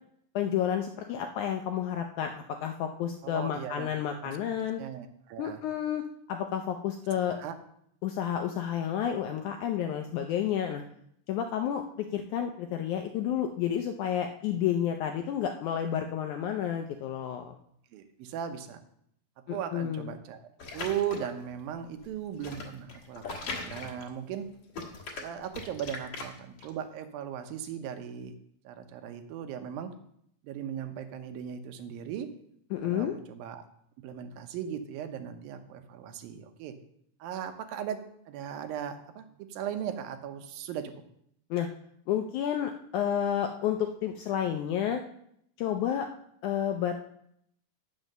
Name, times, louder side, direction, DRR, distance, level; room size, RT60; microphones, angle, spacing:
voice 1, 0.4-4.8 5.4-6.0 6.3-7.4 8.0-10.8 11.3-11.8 12.1-17.6 19.5-20.1 32.7-33.2 41.5-41.7 42.1-45.0 45.6-46.1 46.4-46.9, left 9 dB, 80° left, 5 dB, 1.7 m, -30 dB
voice 2, 3.2-3.9 4.2-4.4 4.8-5.6 7.4-7.5 17.9-18.8 19.5-20.4 20.7-24.5 25.2-28.3 28.6-29.9 30.4-32.3 32.8-33.6 34.0-36.7 37.2-38.0 38.3-40.9, right 9 dB, 85° right, 8 dB, 2.6 m, -37 dB
sound 1, 20.6-21.4 22.0-24.4 24.7-26.7, left 3 dB, 50° left, 2.2 m, -39 dB
9.0 x 6.2 x 6.6 m, 0.71 s
omnidirectional pair, 4.1 m